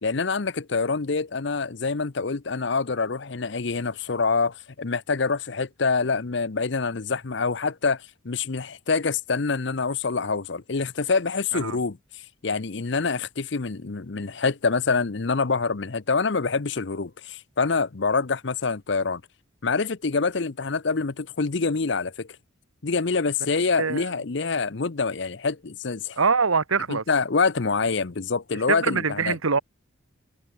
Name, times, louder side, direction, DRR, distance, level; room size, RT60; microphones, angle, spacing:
voice 1, 0.0-12.0 12.4-19.2 19.6-22.3 22.8-26.2 26.9-29.3, left 4 dB, 60° left, 0.7 m, -26 dB
voice 2, 23.8-24.1 26.2-27.0 28.7-29.6, right 5 dB, 90° right, 1.3 m, -23 dB
head